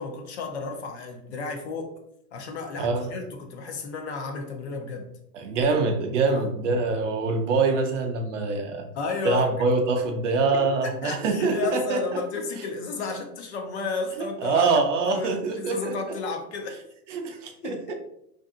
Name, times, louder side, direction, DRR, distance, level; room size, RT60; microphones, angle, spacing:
voice 1, 0.0-1.9 2.3-5.1 6.3-6.4 8.9-9.5 11.0-16.8 17.6-17.9, left 4 dB, 45° left, 3 dB, 0.5 m, -32 dB
voice 2, 2.8-3.1 5.3-8.9 9.2-12.0 14.4-15.9 17.1-17.9, right 4 dB, 50° right, 4 dB, 0.5 m, -24 dB
2.6 x 2.5 x 2.4 m, 0.76 s
hypercardioid pair, 135°, 47 cm